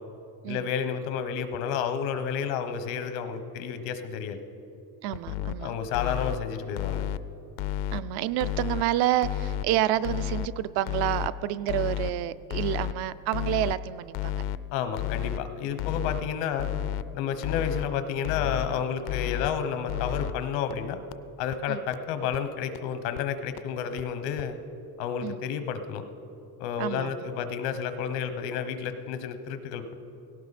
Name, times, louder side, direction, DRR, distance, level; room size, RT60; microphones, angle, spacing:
voice 1, 0.4-4.4 5.6-7.0 14.7-16.7 17.1-21.0 21.4-24.6 25.0-26.0 26.6-29.9, left 7 dB, 85° left, 9 dB, 1.2 m, -31 dB
voice 2, 5.0-5.8 7.9-14.4 21.7-21.8 25.2-25.4 26.8-27.1, right 13 dB, 60° right, 15 dB, 0.5 m, -29 dB
sound 1, 5.1-5.5 5.9-6.4 6.8-7.2 7.6-8.0 8.4-8.8 9.2-9.6 10.0-10.5 10.9-11.3 11.7-12.1 12.5-12.9 13.3-13.8 14.1-14.6 15.0-15.4 15.8-16.2 16.6-17.0 17.4-17.9 18.2-18.7 19.1-19.5 19.9-20.3 20.7-20.8 21.1-21.2 21.5-21.6 21.9-22.0 22.3-22.4 22.7-22.8 23.2-23.3 23.6-23.7 24.0-24.1 24.4-24.5, left 11 dB, 60° left, 0.5 m, -31 dB
18.0 x 17.5 x 4.2 m, 2.8 s
cardioid pair, 175°, 43 cm